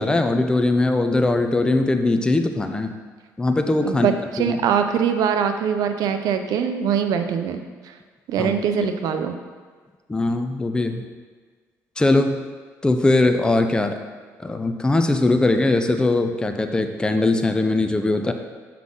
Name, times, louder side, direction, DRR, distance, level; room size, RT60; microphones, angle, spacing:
voice 1, 0.0-2.9 3.4-4.1 4.4-4.6 8.4-8.5 10.1-11.0 12.0-12.4 12.8-14.0 14.4-18.3, left 2 dB, 15° left, 6 dB, 0.6 m, -20 dB
voice 2, 3.8-7.6 8.3-9.3, right 7 dB, 75° right, 7 dB, 0.7 m, -22 dB
7.5 x 5.8 x 3.8 m, 1.5 s
cardioid pair, 90°, 6 cm